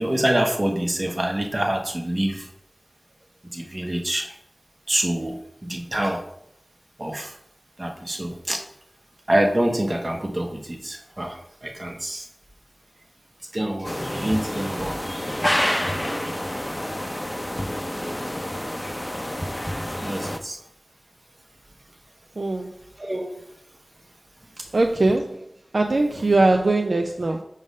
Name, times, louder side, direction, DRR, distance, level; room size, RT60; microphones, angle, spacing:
voice 1, 0.0-2.5 3.5-4.3 4.9-6.2 7.0-7.4 7.8-8.6 9.3-12.3 13.5-15.0 16.0-16.2 20.0-20.6 23.0-23.3, right 1 dB, 45° right, 2 dB, 1.1 m, -26 dB
sound 1, 13.8-20.4, equal, 15° left, 0.6 m, -28 dB
voice 2, 22.4-22.7 24.7-25.4 25.7-27.4, right 2 dB, 75° right, 4 dB, 0.4 m, -21 dB
5.0 x 3.7 x 5.3 m, 0.72 s
wide cardioid pair, 45°, 0 cm